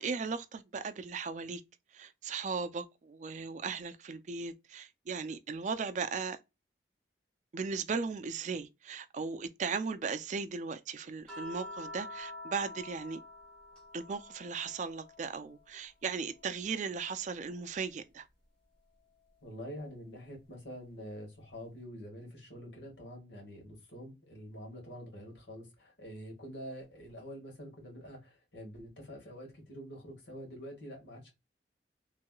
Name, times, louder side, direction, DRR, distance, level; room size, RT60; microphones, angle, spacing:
voice 1, 0.0-1.6 1.9-6.4 7.5-13.2 13.9-18.3, right 5 dB, 45° right, 0.4 m, -37 dB
sound 1, 11.3-15.8 16.1-17.8 19.3-19.4, left 1 dB, 5° left, 1.0 m, -48 dB
voice 2, 19.4-31.3, equal, 80° left, 1.8 m, -46 dB
3.2 x 2.9 x 2.3 m
head